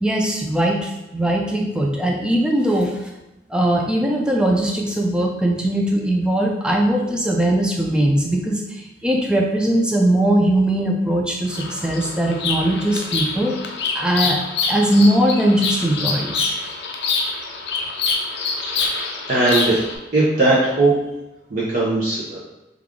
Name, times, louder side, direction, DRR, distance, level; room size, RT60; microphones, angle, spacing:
voice 1, 0.0-3.1 3.5-13.6 13.9-14.4 14.7-16.5, right 1 dB, 5° right, 0 dB, 0.3 m, -20 dB
Bird vocalization bird call bird song, 11.5-20.0, left 4 dB, 60° left, 0.4 m, -26 dB
voice 2, 18.9-19.8 20.1-20.9 21.5-22.4, right 2 dB, 45° right, -7 dB, 0.6 m, -19 dB
3.2 x 2.4 x 3.5 m, 0.96 s
head